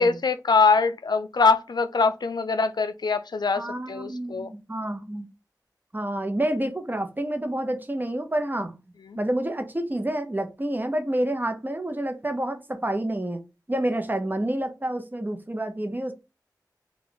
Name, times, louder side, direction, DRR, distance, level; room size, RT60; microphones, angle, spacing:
voice 1, 0.0-4.5 9.1-9.2, left 4 dB, 75° left, 0.4 m, -23 dB
voice 2, 3.6-5.3 5.9-8.7 9.2-13.4 13.7-16.1, right 1 dB, 25° right, 0.8 m, -28 dB
3.3 x 2.4 x 3.8 m
cardioid pair, 40°, 7 cm